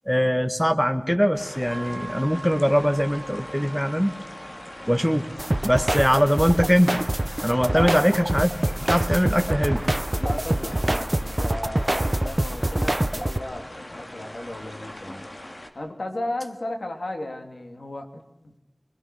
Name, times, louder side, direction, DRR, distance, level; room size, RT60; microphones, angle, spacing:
voice 1, 0.0-4.1 4.9-5.3 5.6-7.0 7.4-9.8, equal, 5° left, 9 dB, 1.6 m, -22 dB
sound 1, 1.3-15.7, left 1 dB, 55° left, 2.5 m, -41 dB
sound 2, 1.7-15.4, right 2 dB, 65° right, 2.7 m, -46 dB
sound 3, 5.4-13.4, right 1 dB, 30° right, 0.8 m, -25 dB
voice 2, 7.7-8.1 10.2-15.3 15.7-18.5, left 1 dB, 80° left, 4 dB, 2.8 m, -34 dB
24.5 x 21.0 x 6.3 m, 0.90 s
wide cardioid pair, 55°, 0 cm